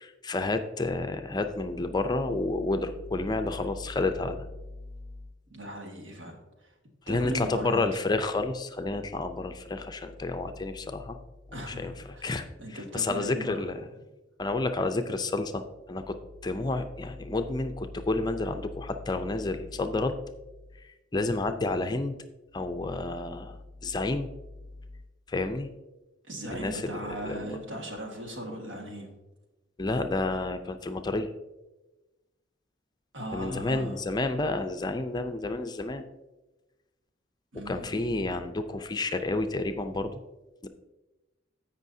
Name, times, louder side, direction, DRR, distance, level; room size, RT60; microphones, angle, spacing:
voice 1, 0.0-4.4 7.1-11.2 11.7-13.7 14.4-15.6 15.9-16.2 16.4-20.1 21.1-22.1 22.5-24.3 25.3-25.7 26.5-27.5 29.8-31.3 33.3-36.0 37.7-40.1 40.6-40.7, left 2 dB, 20° left, 8 dB, 0.4 m, -30 dB
voice 2, 5.5-6.7 7.1-7.9 11.5-12.3 12.6-13.7 14.0-14.1 26.2-29.1 33.1-34.0 37.5-38.0, equal, 80° right, 2 dB, 1.7 m, -38 dB
16.0 x 5.5 x 2.7 m, 1.1 s
head